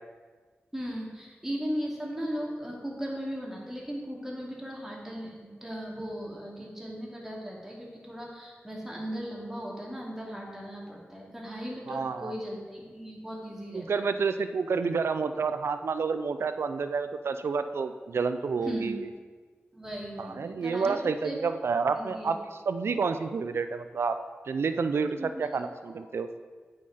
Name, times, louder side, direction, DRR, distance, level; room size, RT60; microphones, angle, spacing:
voice 1, 0.7-14.1 18.6-18.9 19.7-21.0 21.2-21.4 21.9-22.3 25.2-25.6 25.9-26.0, equal, 10° right, -3 dB, 2.5 m, -37 dB
voice 2, 11.9-12.3 13.7-19.1 20.2-22.4 22.7-24.2 24.5-26.3, right 5 dB, 75° right, 10 dB, 0.4 m, -29 dB
8.4 x 5.8 x 4.9 m, 1.5 s
cardioid pair, 55°, 4 cm